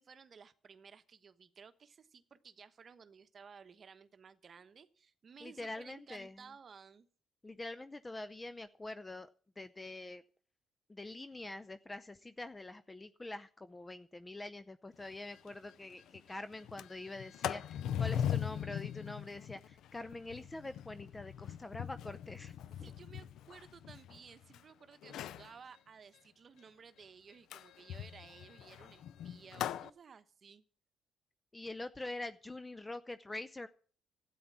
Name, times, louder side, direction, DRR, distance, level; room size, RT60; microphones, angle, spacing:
voice 1, 0.0-7.1 22.8-30.6, right 6 dB, 45° right, 11 dB, 1.1 m, -56 dB
voice 2, 5.4-6.4 7.4-9.3 9.6-10.2 10.9-22.5 22.8-22.9 31.5-33.7, left 2 dB, 20° left, 12 dB, 0.6 m, -45 dB
Sliding door, 15.0-15.1 15.5-15.6 15.9-16.2 16.6-24.6 25.0-25.5 27.5-29.9, left 9 dB, 80° left, 0.5 m, -40 dB
13.0 x 9.4 x 7.4 m, 0.42 s
cardioid pair, 90°, 0 cm